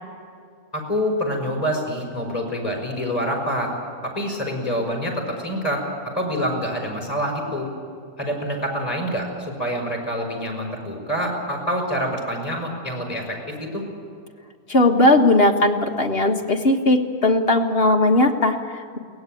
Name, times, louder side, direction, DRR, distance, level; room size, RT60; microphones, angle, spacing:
voice 1, 0.7-3.7 4.0-5.8 6.1-7.7 8.2-13.8, equal, 25° left, 1 dB, 6.0 m, -26 dB
voice 2, 14.7-19.0, left 2 dB, 40° left, 3 dB, 1.8 m, -18 dB
22.5 x 18.5 x 9.2 m, 2.2 s
omnidirectional pair, 1.6 m